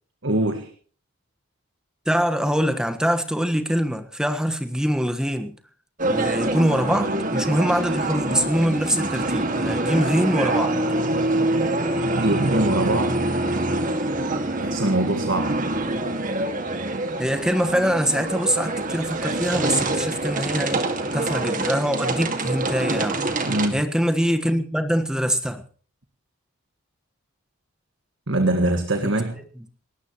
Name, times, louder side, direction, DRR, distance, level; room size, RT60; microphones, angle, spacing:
voice 1, 0.2-0.7 12.2-13.2 14.6-15.6 23.4-23.8 28.3-29.3, right 1 dB, 55° right, 6 dB, 1.8 m, -23 dB
voice 2, 2.0-5.6 6.1-10.8 17.2-20.8 21.1-23.4 23.7-25.6, equal, 5° right, 6 dB, 1.4 m, -24 dB
sound 1, 6.0-23.7, right 2 dB, 35° right, 2.0 m, -25 dB
28.5 x 14.0 x 3.1 m, 0.43 s
head